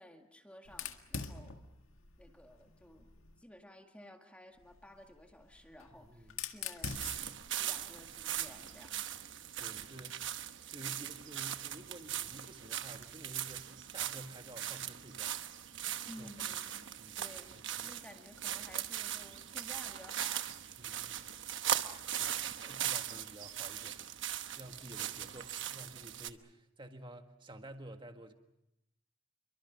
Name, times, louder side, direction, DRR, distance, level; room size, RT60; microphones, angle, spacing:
voice 1, 0.0-1.7 2.2-3.1 3.4-7.1 7.6-9.1 16.1-16.9 17.2-20.5 22.6-22.8, left 1 dB, 5° left, 3 dB, 1.9 m, -55 dB
Fire, 0.7-3.4 4.6-8.8, left 6 dB, 80° left, 1.9 m, -46 dB
voice 2, 6.0-6.4 9.6-10.2 10.7-15.3 16.2-16.3 17.0-17.2 17.5-17.9 20.8-21.2 22.1-24.0 24.5-28.3, right 1 dB, 25° right, 5 dB, 1.7 m, -51 dB
sound 1, 6.8-26.3, right 10 dB, 60° right, 1.1 m, -39 dB
28.5 x 24.0 x 6.0 m, 0.86 s
head